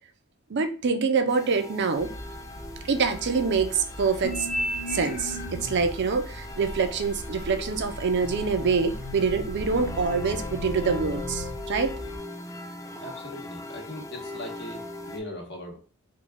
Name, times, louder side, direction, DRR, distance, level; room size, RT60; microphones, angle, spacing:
voice 1, 0.5-2.1 2.9-4.5 4.9-11.9, right 5 dB, 55° right, 8 dB, 0.5 m, -25 dB
sound 1, 1.3-15.2, left 2 dB, 15° left, 0.3 m, -40 dB
sound 2, 1.9-12.2, equal, 85° left, 0.8 m, -41 dB
sound 3, 4.2-5.9 6.6-11.5, left 1 dB, 40° left, 0.7 m, -35 dB
voice 2, 13.0-15.8, left 1 dB, 55° left, 0 dB, 1.2 m, -39 dB
3.9 x 2.3 x 3.5 m, 0.39 s
head